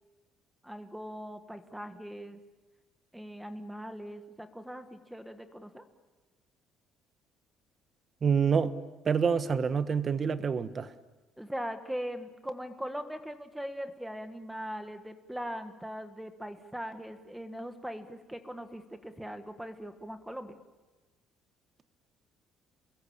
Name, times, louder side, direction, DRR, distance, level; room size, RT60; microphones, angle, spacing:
voice 1, 0.6-2.4 3.1-5.8 11.4-20.6, equal, 5° right, 1.4 m, -40 dB
voice 2, 8.2-8.7 9.0-10.9, right 6 dB, 30° right, 1.2 m, -27 dB
28.5 x 21.5 x 8.7 m
cardioid pair, 160°, 0 cm